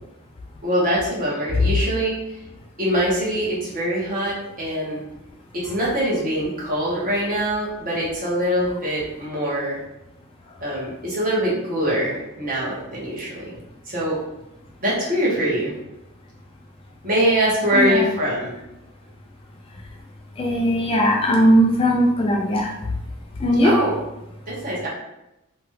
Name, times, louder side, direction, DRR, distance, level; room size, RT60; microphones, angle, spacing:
voice 1, 0.6-2.1 2.8-5.0 5.5-9.8 10.6-13.5 13.9-14.2 14.8-15.7 17.0-18.6 23.6-23.9 24.5-24.9, equal, 40° right, -6 dB, 1.1 m, -23 dB
voice 2, 17.7-18.1 20.4-22.7 23.4-23.7, equal, 25° left, -1 dB, 0.3 m, -18 dB
2.9 x 2.3 x 3.1 m, 0.91 s
head